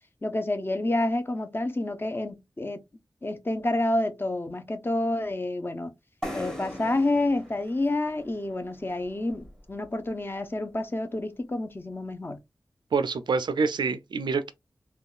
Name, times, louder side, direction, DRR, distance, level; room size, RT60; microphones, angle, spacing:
voice 1, 0.2-2.8 3.2-5.9 6.3-12.4, left 2 dB, 30° left, 0.6 m, -29 dB
sound 1, 6.2-9.9, equal, 5° left, 0.9 m, -40 dB
voice 2, 12.9-14.5, right 4 dB, 75° right, 0.3 m, -26 dB
3.5 x 2.2 x 2.4 m
wide cardioid pair, 75°, 8 cm